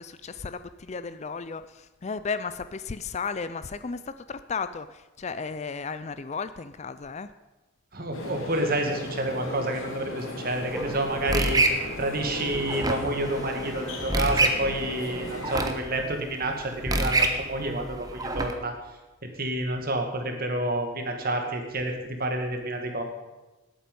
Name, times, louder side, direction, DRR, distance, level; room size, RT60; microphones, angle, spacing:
voice 1, 0.0-7.3, left 5 dB, 30° left, 13 dB, 0.4 m, -34 dB
voice 2, 7.9-11.6 12.0-18.8 19.2-23.0, right 1 dB, 45° right, 4 dB, 2.0 m, -29 dB
sound 1, 8.1-15.6, left 1 dB, 70° left, 2.6 m, -37 dB
sound 2, 10.5-18.5, right 2 dB, 15° right, 1.0 m, -28 dB
18.5 x 8.7 x 5.4 m, 1.1 s
head